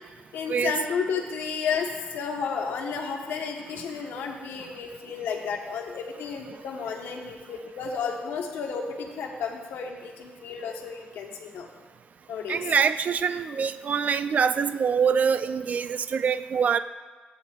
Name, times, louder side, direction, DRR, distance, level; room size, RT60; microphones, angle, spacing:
voice 1, 0.3-11.7 12.3-12.6, left 6 dB, 80° left, 2 dB, 1.3 m, -32 dB
voice 2, 12.5-16.8, right 6 dB, 45° right, 11 dB, 0.3 m, -24 dB
14.0 x 8.9 x 2.5 m, 1.3 s
cardioid pair, 85°, 3 cm